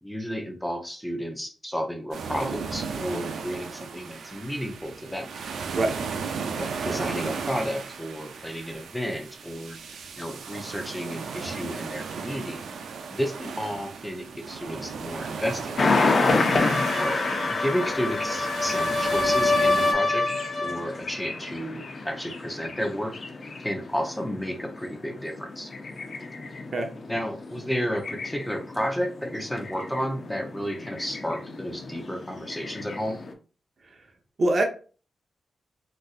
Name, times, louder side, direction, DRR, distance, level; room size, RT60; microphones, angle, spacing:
voice 1, 0.0-5.3 6.6-9.8 10.2-12.6 13.1-15.8 16.9-20.3 20.6-23.1 23.6-25.7 27.1-33.2, equal, 5° left, 3 dB, 0.6 m, -32 dB
sound 1, 2.1-19.9, right 5 dB, 85° right, 0.4 m, -35 dB
voice 2, 5.7-6.0 26.7-26.9 34.4-34.6, right 2 dB, 55° right, 3 dB, 0.7 m, -23 dB
sound 2, 15.8-33.3, left 3 dB, 50° left, 0.6 m, -30 dB
sound 3, 16.0-20.9, left 2 dB, 25° left, 1.2 m, -26 dB
4.0 x 2.5 x 2.4 m, 0.37 s
cardioid pair, 85°, 0 cm